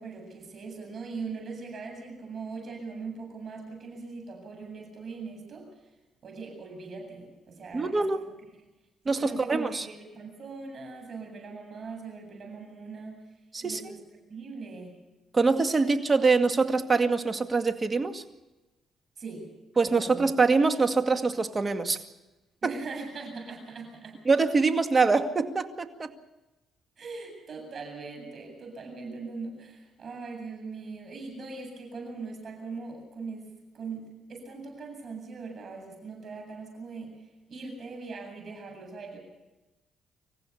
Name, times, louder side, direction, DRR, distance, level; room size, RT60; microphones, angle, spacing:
voice 1, 0.0-5.9 6.2-8.0 8.4-8.5 9.1-13.2 13.6-14.0 14.3-15.0 19.2-19.5 19.8-20.3 22.6-24.2 27.0-39.2, right 4 dB, 50° right, 3 dB, 7.9 m, -40 dB
voice 2, 7.7-8.2 9.1-9.9 13.5-13.8 15.3-18.2 19.8-22.0 24.3-26.1, right 4 dB, 30° right, 7 dB, 2.1 m, -24 dB
26.0 x 15.0 x 7.1 m, 1.1 s
cardioid pair, 90°, 0 cm